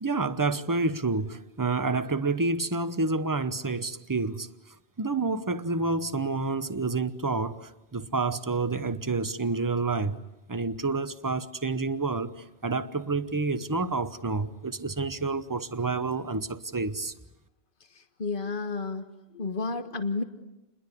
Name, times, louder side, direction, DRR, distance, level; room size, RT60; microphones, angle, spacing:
voice 1, 0.0-4.5 5.0-10.2 10.5-17.1, right 3 dB, 20° right, 0.9 m, -29 dB
voice 2, 18.0-19.1 19.3-20.2, left 3 dB, 50° left, 1.7 m, -31 dB
29.0 x 21.5 x 8.4 m
omnidirectional pair, 1.2 m